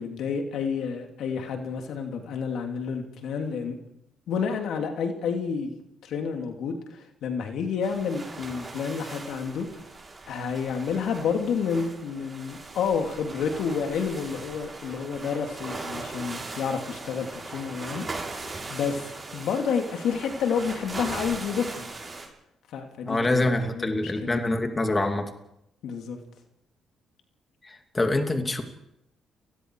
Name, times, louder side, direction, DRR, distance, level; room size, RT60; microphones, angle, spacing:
voice 1, 0.0-3.8 4.3-9.7 10.3-19.1 19.3-21.9 22.7-24.4 25.8-26.2, left 6 dB, 75° left, 4 dB, 3.0 m, -30 dB
sound 1, 7.8-22.3, right 3 dB, 25° right, 8.0 m, -39 dB
voice 2, 23.0-25.2 27.6-28.6, left 2 dB, 25° left, 4 dB, 2.7 m, -25 dB
30.0 x 19.5 x 4.9 m, 0.82 s
cardioid pair, 90°, 0 cm